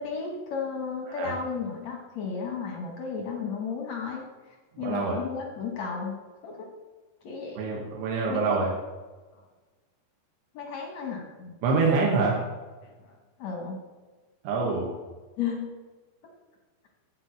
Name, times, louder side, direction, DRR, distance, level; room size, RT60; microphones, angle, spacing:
voice 1, 0.0-6.1 6.4-6.7 7.2-7.6 8.3-8.7 10.5-11.6 11.9-12.3 12.8-13.8 15.4-15.7, left 5 dB, 70° left, 0 dB, 1.6 m, -34 dB
voice 2, 4.8-5.2 7.6-8.7 11.6-12.4 14.5-15.0, right 4 dB, 85° right, -2 dB, 3.5 m, -26 dB
12.5 x 4.4 x 7.8 m, 1.3 s
omnidirectional pair, 4.8 m